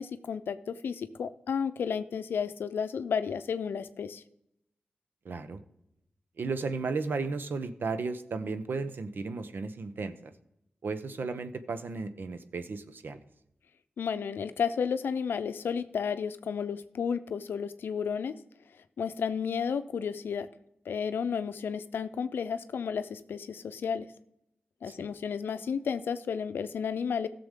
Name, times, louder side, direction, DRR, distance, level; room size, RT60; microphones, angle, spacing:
voice 1, 0.0-4.2 14.0-18.3 19.0-20.5 20.9-24.1 24.8-27.3, left 6 dB, 85° left, 12 dB, 0.5 m, -32 dB
voice 2, 5.2-5.6 6.4-10.3 10.8-13.2 24.9-25.1, right 4 dB, 75° right, 10 dB, 0.8 m, -34 dB
16.0 x 6.8 x 3.7 m, 0.81 s
cardioid pair, 45°, 4 cm